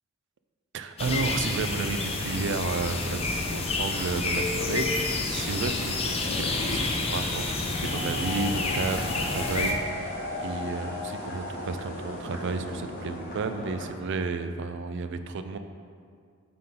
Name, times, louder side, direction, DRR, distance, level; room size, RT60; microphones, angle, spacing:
voice 1, 0.7-15.6, right 4 dB, 55° right, 9 dB, 0.4 m, -32 dB
sound 1, 1.0-9.7, left 3 dB, 30° left, 0.5 m, -29 dB
sound 2, 5.7-13.9, left 1 dB, 10° left, 1.4 m, -50 dB
sound 3, 7.5-13.9, left 1 dB, 45° left, 1.0 m, -36 dB
7.5 x 3.7 x 4.3 m, 2.1 s
head